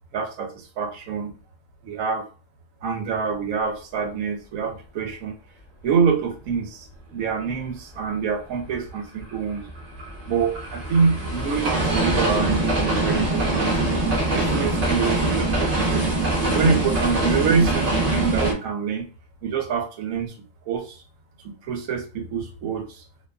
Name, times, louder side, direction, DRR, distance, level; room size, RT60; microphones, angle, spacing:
voice 1, 0.1-1.3 1.8-2.2 2.8-5.3 5.8-9.7 10.3-13.7 14.3-16.1 16.4-19.1 19.4-20.3 20.7-21.0 21.6-23.0, right 6 dB, 90° right, 4 dB, 1.0 m, -26 dB
sound 1, 9.2-18.5, right 2 dB, 40° right, 0.7 m, -23 dB
2.5 x 2.3 x 2.2 m, 0.35 s
omnidirectional pair, 1.4 m